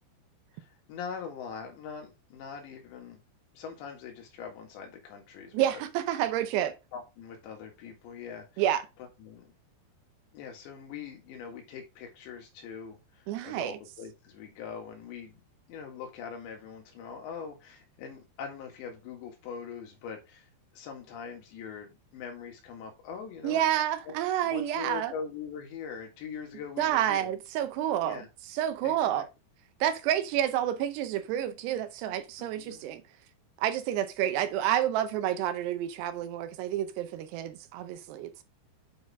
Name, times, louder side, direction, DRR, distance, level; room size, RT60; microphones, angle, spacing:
voice 1, 0.5-3.2 3.6-5.8 6.9-8.6 9.2-9.5 10.3-15.4 15.7-23.7 24.1-24.2 24.4-27.3 28.0-28.3 28.8-29.2 32.4-32.9, left 6 dB, 85° left, 4.0 m, -42 dB
voice 2, 5.5-6.7 8.6-8.8 13.3-13.8 23.4-25.1 26.8-28.2 28.5-29.3 29.8-33.0 33.6-38.4, right 11 dB, 80° right, 2.7 m, -29 dB
8.6 x 4.3 x 3.5 m
omnidirectional pair, 5.0 m